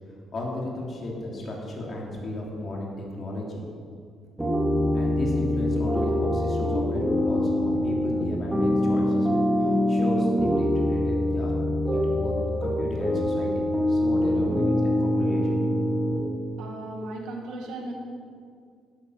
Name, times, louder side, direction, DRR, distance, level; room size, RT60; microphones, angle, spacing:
voice 1, 0.3-3.6 4.9-9.4 9.9-11.5 11.9-12.3 12.6-15.8 16.0-16.2, left 1 dB, 45° left, -2 dB, 3.2 m, -34 dB
sound 1, 4.4-16.2, left 1 dB, 5° right, 3.1 m, -24 dB
voice 2, 16.6-17.9, right 2 dB, 90° right, 1 dB, 1.9 m, -36 dB
11.0 x 9.5 x 6.7 m, 2.2 s
cardioid pair, 90°, 0 cm